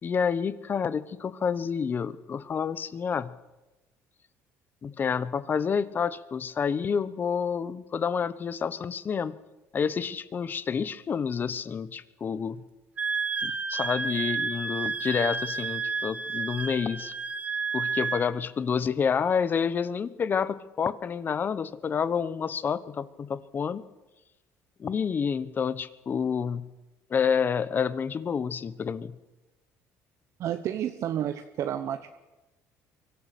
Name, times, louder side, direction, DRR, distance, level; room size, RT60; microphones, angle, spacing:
voice 1, 0.0-3.3 4.8-9.4 9.7-12.6 13.4-17.1 17.7-23.8 24.8-26.7 27.1-29.2, left 6 dB, 35° left, 17 dB, 1.0 m, -29 dB
Wind instrument woodwind instrument, 13.0-18.3, right 4 dB, 25° right, 1.5 m, -31 dB
voice 2, 30.4-32.1, right 10 dB, 55° right, 8 dB, 1.1 m, -30 dB
23.5 x 14.5 x 8.4 m, 1.1 s
cardioid pair, 120°, 6 cm